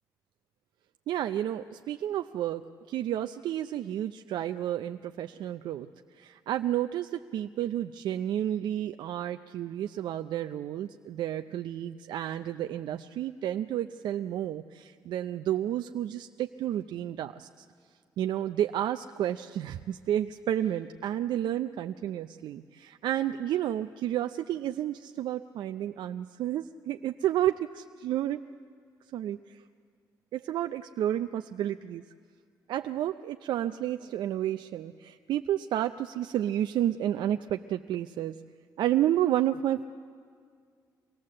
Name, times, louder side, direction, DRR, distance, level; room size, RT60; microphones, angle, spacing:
voice 1, 1.1-2.6 2.9-5.9 6.1-17.7 18.2-28.4 29.1-29.6 30.3-32.0 32.7-38.3 38.8-39.8, right 11 dB, 75° right, 8 dB, 0.5 m, -31 dB
24.5 x 18.0 x 7.6 m, 2.1 s
cardioid pair, 80°, 8 cm